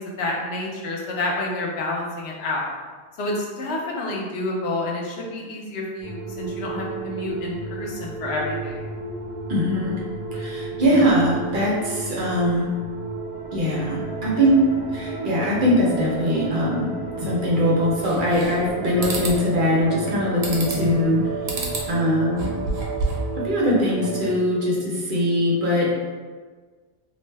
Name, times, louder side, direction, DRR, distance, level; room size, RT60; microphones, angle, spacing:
voice 1, 0.0-2.7 3.2-8.8, left 2 dB, 90° left, -2 dB, 0.9 m, -29 dB
sound 1, 6.0-24.4, right 3 dB, 50° left, 0.8 m, -32 dB
voice 2, 9.5-10.0 10.3-12.7 13.5-14.6 14.9-21.3 21.6-22.6 23.4-25.9, equal, 60° right, -5 dB, 0.8 m, -22 dB
sound 2, 18.0-18.7 19.0-19.4 20.4-20.9 21.5-21.9 22.3-23.3, right 3 dB, 90° right, 0.9 m, -29 dB
2.6 x 2.1 x 3.2 m, 1.5 s
omnidirectional pair, 1.0 m